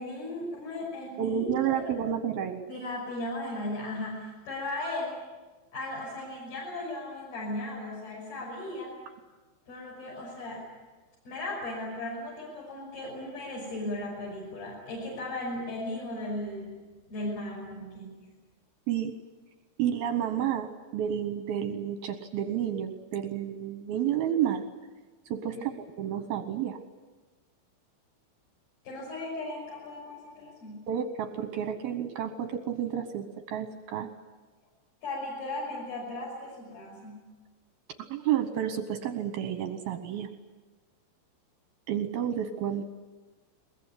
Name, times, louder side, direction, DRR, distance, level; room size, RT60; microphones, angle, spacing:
voice 1, 0.0-1.9 2.7-5.1 5.7-8.9 9.7-10.7 11.3-18.2 25.5-25.8 28.8-30.9 35.0-37.2, left 1 dB, 50° left, -5 dB, 7.8 m, -37 dB
voice 2, 1.2-2.6 18.9-19.1 19.8-24.7 25.3-26.8 30.9-34.1 38.1-40.3 41.9-42.8, right 9 dB, 75° right, 8 dB, 2.3 m, -30 dB
22.0 x 22.0 x 9.8 m, 1.3 s
omnidirectional pair, 5.7 m